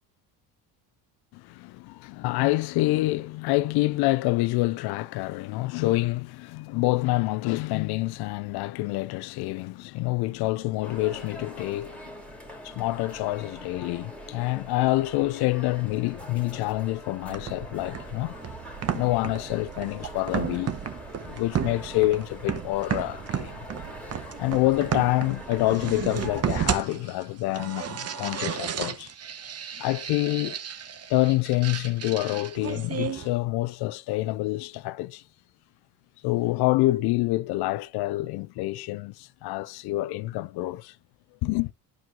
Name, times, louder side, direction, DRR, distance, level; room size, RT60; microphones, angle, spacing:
voice 1, 1.3-12.1 12.6-18.3 18.9-20.7 21.2-23.5 24.4-29.1 29.8-30.6 31.1-35.2 36.2-41.0 41.4-41.7, left 19 dB, 65° left, 0.5 m, -27 dB
sound 1, 10.8-26.4, left 1 dB, 5° left, 2.1 m, -43 dB
sound 2, 17.3-33.3, right 8 dB, 35° right, 0.9 m, -33 dB
11.0 x 4.7 x 3.8 m
supercardioid pair, 90°, 43 cm